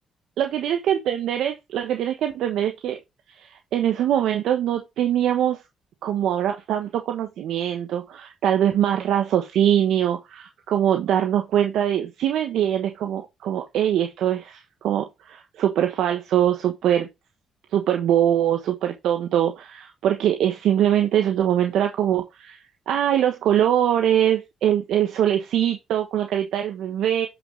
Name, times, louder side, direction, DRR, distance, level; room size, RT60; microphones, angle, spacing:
voice 1, 0.4-3.0 3.3-5.6 6.0-17.1 17.7-27.3, right 10 dB, 80° right, 1.1 m, -23 dB
7.2 x 6.2 x 3.8 m
cardioid pair, 90°, 0 cm